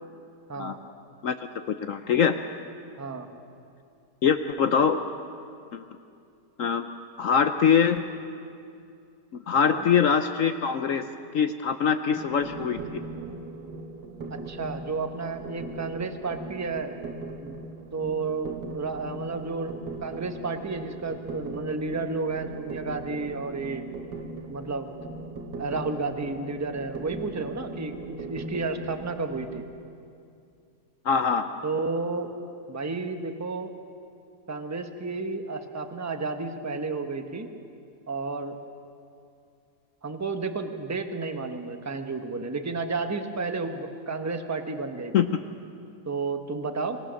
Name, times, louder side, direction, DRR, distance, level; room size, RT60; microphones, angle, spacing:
voice 1, 1.7-2.4 4.2-5.0 5.7-5.8 6.6-6.9 7.2-8.0 9.5-11.1 11.3-13.0 31.0-31.5 45.1-45.3, left 7 dB, 65° left, 9 dB, 0.8 m, -23 dB
voice 2, 3.0-3.3 9.6-9.8 14.3-16.9 17.4-17.6 17.9-23.8 24.5-24.9 25.6-29.6 31.6-32.3 32.7-33.7 34.5-37.5 38.1-38.6 40.0-45.1 46.1-47.0, right 3 dB, 15° right, 6 dB, 0.6 m, -32 dB
sound 1, 12.2-29.6, right 2 dB, 70° right, 2.0 m, -39 dB
25.0 x 18.0 x 6.3 m, 2.5 s
omnidirectional pair, 1.9 m